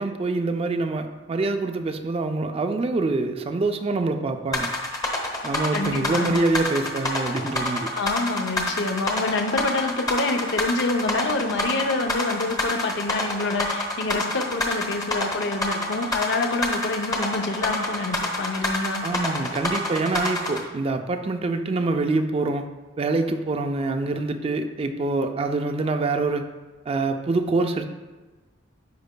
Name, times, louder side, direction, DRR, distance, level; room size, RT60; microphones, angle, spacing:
voice 1, 0.0-4.7 5.4-7.9 19.0-22.7 23.0-26.5 26.9-27.9, right 3 dB, 30° right, 7 dB, 0.4 m, -25 dB
sound 1, 4.5-20.6, left 2 dB, 20° left, 0.9 m, -27 dB
voice 2, 5.7-6.4 7.9-19.0, left 3 dB, 65° left, 5 dB, 0.6 m, -27 dB
10.5 x 4.8 x 2.2 m, 1.2 s
head